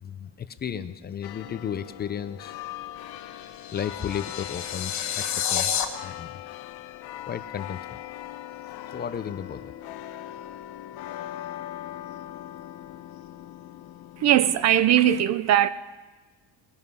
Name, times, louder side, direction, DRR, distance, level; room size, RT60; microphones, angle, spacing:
voice 1, 0.0-2.6 3.7-6.4 7.3-8.0 8.9-9.7, left 8 dB, 25° left, 0.5 m, -34 dB
sound 1, 1.2-14.8, left 13 dB, 65° left, 0.8 m, -40 dB
sound 2, 3.2-5.8, left 9 dB, 45° left, 1.3 m, -29 dB
voice 2, 14.2-15.7, right 11 dB, 45° right, 0.5 m, -20 dB
20.0 x 11.0 x 5.5 m
cardioid pair, 165°, 40 cm